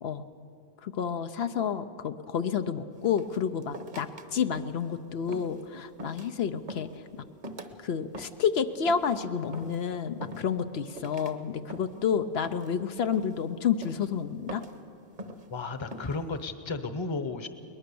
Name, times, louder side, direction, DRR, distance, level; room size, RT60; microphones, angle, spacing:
voice 1, 0.8-6.9 7.8-14.6, left 7 dB, 75° left, 9 dB, 0.9 m, -30 dB
sound 1, 3.0-4.3 4.5-4.9 5.3-5.6 6.0-6.4 6.7-7.0 7.4-7.8 8.1-8.5 8.9-9.2 9.5-9.8 10.2-10.7 11.0-11.3 11.7-12.1 12.4-12.8 13.1-13.4 13.8-14.1 14.5-14.8 15.2-15.5 15.9-16.2, right 1 dB, 45° right, 1.2 m, -43 dB
voice 2, 15.5-17.5, left 3 dB, 30° left, 10 dB, 0.9 m, -33 dB
22.0 x 20.0 x 6.9 m, 2.9 s
omnidirectional pair, 1.1 m